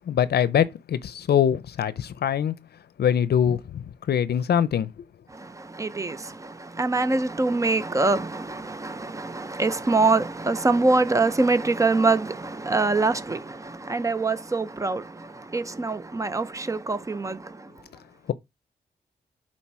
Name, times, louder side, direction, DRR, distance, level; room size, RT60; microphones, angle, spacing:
voice 1, 0.1-2.5 3.0-4.9, left 9 dB, 70° left, 0.6 m, -23 dB
voice 2, 5.3-17.7, right 3 dB, 20° right, 0.5 m, -24 dB
7.2 x 4.4 x 4.7 m
wide cardioid pair, 170°, 17 cm